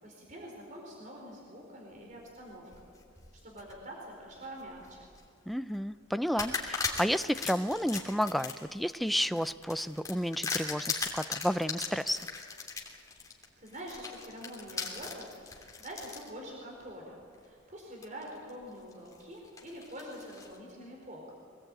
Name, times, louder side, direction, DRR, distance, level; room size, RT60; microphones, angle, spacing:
voice 1, 0.0-2.9 3.4-5.1 13.3-21.3, equal, 40° right, -1 dB, 4.5 m, -46 dB
sound 1, 2.5-3.8 4.3-5.2 5.7-5.8 6.4-16.3 16.9-17.0 18.0-18.5 18.9-20.6, left 4 dB, 15° left, 3.0 m, -38 dB
voice 2, 5.5-12.3, equal, ahead, 11 dB, 0.5 m, -31 dB
25.0 x 19.0 x 8.9 m, 2.4 s
head